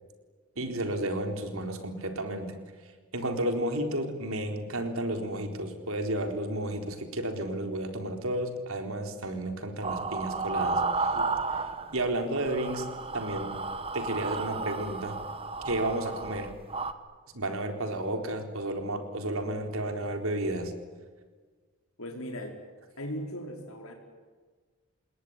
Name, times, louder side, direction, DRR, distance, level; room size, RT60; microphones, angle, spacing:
voice 1, 0.6-2.5 3.1-11.1 11.9-12.9 13.1-13.6 13.9-15.2 15.6-16.5 17.3-20.7, right 1 dB, 80° right, 5 dB, 4.1 m, -32 dB
sound 1, 9.8-12.1 12.4-16.9, right 3 dB, 25° right, 1.4 m, -32 dB
voice 2, 22.0-22.6 23.0-23.9, equal, 85° left, 2 dB, 4.7 m, -38 dB
28.0 x 20.5 x 9.9 m, 1.5 s
head